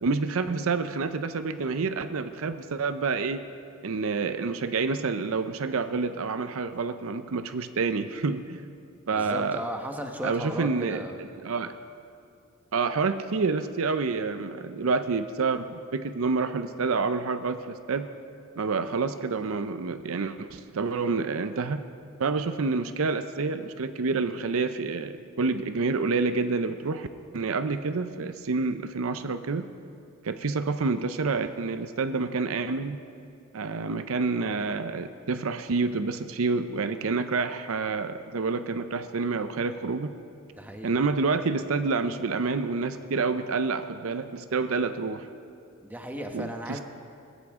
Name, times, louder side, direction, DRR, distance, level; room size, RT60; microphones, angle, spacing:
voice 1, 0.0-3.4 3.8-8.6 9.1-9.7 10.2-11.7 12.7-18.1 18.6-21.8 22.2-27.1 27.3-29.7 30.2-33.0 33.5-40.1 40.8-45.3 46.3-46.8, right 4 dB, 70° right, 10 dB, 0.6 m, -28 dB
voice 2, 9.1-11.2 40.6-40.9 45.8-46.8, equal, 10° right, 3 dB, 1.1 m, -35 dB
21.0 x 15.5 x 3.6 m, 2.4 s
head